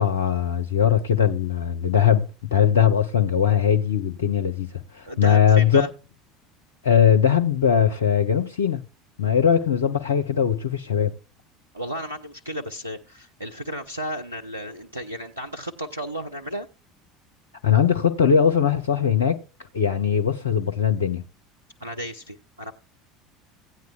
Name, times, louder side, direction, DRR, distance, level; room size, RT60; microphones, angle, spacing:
voice 1, 0.0-5.8 6.8-8.8 9.2-11.1 17.6-19.4 19.7-21.2, left 8 dB, 70° left, 0.5 m, -20 dB
voice 2, 5.0-5.9 11.7-16.7 21.8-22.7, equal, 85° right, 0.5 m, -33 dB
16.0 x 9.3 x 2.3 m
figure-of-eight pair, 70°, 0 cm